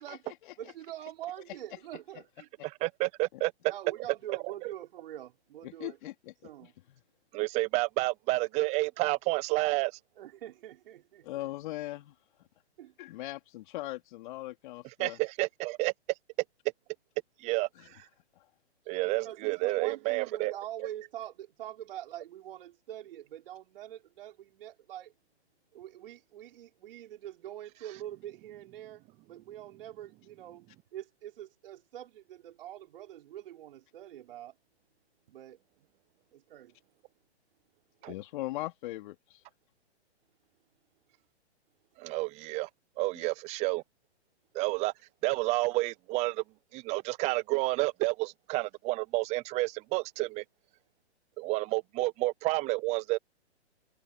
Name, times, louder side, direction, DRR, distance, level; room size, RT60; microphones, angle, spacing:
voice 1, 0.0-0.5 3.3-3.4 5.6-6.1 6.6-6.7 11.2-12.1 13.0-15.2 17.7-17.9 18.4-18.5 38.0-39.4 43.2-43.3, left 16 dB, 45° left, 3.3 m, -40 dB
voice 2, 0.6-2.5 3.7-6.0 6.4-6.7 10.2-11.5 12.8-12.9 19.2-25.1 25.7-34.5 35.3-35.6 36.3-36.7, right 12 dB, 55° right, 4.5 m, -44 dB
voice 3, 2.6-3.5 4.3-4.4 7.3-9.9 15.0-15.9 17.4-18.0 18.9-20.5 38.0-38.1 42.0-42.7 43.0-43.8 44.5-44.9 45.2-46.4 46.7-50.4 51.4-53.2, right 22 dB, 20° right, 0.7 m, -30 dB
hypercardioid pair, 135°, 33 cm